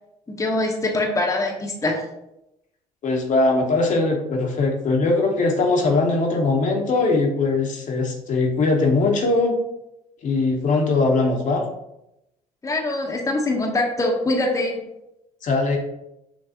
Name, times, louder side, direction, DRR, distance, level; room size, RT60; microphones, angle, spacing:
voice 1, 0.3-2.0 12.6-14.9, left 2 dB, 20° left, 0 dB, 0.8 m, -23 dB
voice 2, 3.0-9.6 10.2-11.6 15.4-15.8, left 3 dB, 50° left, 1 dB, 0.9 m, -20 dB
5.8 x 2.3 x 2.8 m, 0.86 s
supercardioid pair, 75°, 17 cm